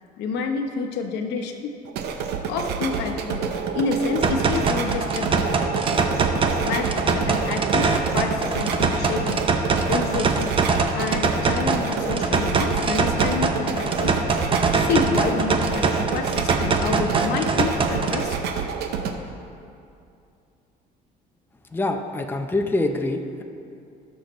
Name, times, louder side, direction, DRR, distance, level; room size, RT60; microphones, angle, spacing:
voice 1, 0.2-1.7 2.5-5.3 6.6-9.5 9.9-10.6 10.9-14.2 14.8-18.4, left 4 dB, 85° left, 5 dB, 0.9 m, -28 dB
sound 1, 1.9-19.1, right 6 dB, 80° right, 0.8 m, -29 dB
sound 2, 4.2-18.2, right 4 dB, 30° right, 0.8 m, -23 dB
voice 2, 21.7-23.4, left 2 dB, 10° left, 4 dB, 0.6 m, -25 dB
17.0 x 6.5 x 3.1 m, 2.5 s
cardioid pair, 110°, 17 cm